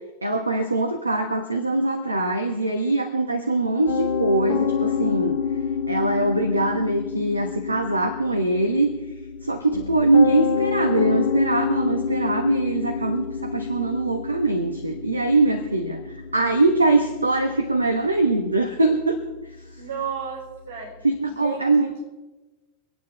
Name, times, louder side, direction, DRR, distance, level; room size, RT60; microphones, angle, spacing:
voice 1, 0.2-5.4 5.9-9.0 9.4-19.2 19.7-19.8 21.0-22.0, right 2 dB, 80° right, 5 dB, 1.2 m, -22 dB
Piano, 3.9-21.0, left 6 dB, 60° left, 1.8 m, -29 dB
voice 2, 19.8-20.9 21.3-22.0, right 6 dB, 55° right, -4 dB, 6.1 m, -33 dB
25.5 x 9.3 x 4.3 m, 1.2 s
figure-of-eight pair, 90°, 0 cm